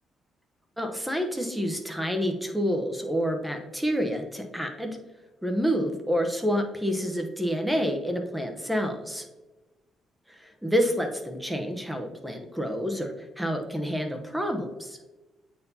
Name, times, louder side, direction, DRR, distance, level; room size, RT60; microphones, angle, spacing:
voice 1, 0.8-5.0 5.4-9.2 10.4-15.0, equal, 5° right, 4 dB, 0.9 m, -28 dB
8.4 x 4.5 x 2.8 m, 1.1 s
cardioid pair, 90°, 0 cm